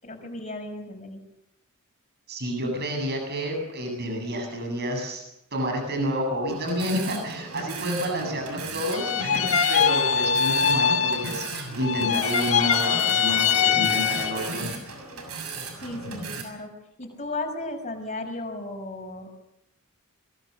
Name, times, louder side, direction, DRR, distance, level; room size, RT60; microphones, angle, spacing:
voice 1, 0.0-1.2 15.8-16.7 17.0-19.3, left 2 dB, 30° left, 3 dB, 6.0 m, -35 dB
voice 2, 2.3-5.2 5.5-14.7, equal, 50° right, 3 dB, 8.0 m, -29 dB
sound 1, 6.5-16.4, right 3 dB, 90° right, 6.6 m, -36 dB
sound 2, 8.9-11.6 11.8-14.6, left 7 dB, 65° left, 1.6 m, -23 dB
24.5 x 22.5 x 6.6 m, 0.80 s
head